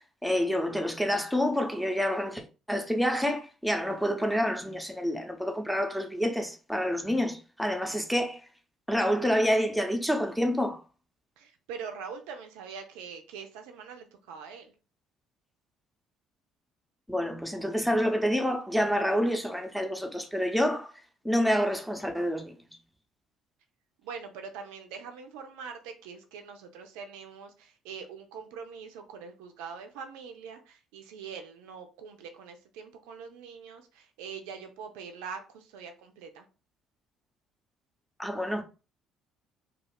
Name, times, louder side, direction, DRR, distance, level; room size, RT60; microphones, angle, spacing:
voice 1, 0.2-8.4 8.9-10.8 17.1-20.9 21.2-22.5 38.2-38.6, equal, ahead, 0.7 m, -28 dB
voice 2, 11.4-14.7 24.0-36.5, right 6 dB, 70° right, 0.4 m, -43 dB
2.4 x 2.3 x 3.3 m
figure-of-eight pair, 50°, 0 cm